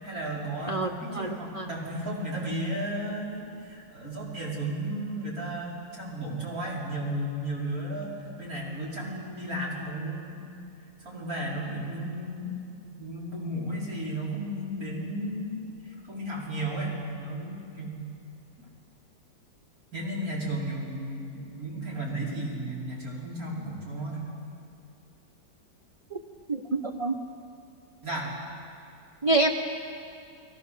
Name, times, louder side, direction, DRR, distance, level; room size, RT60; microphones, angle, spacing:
voice 1, 0.0-10.4 11.0-18.0 19.9-24.3 28.0-28.3, right 1 dB, 50° right, -4 dB, 5.6 m, -34 dB
voice 2, 0.7-1.7 26.1-26.2 26.5-27.2 29.2-29.5, right 2 dB, 30° right, 3 dB, 0.6 m, -27 dB
29.5 x 22.0 x 6.8 m, 2.5 s
omnidirectional pair, 2.0 m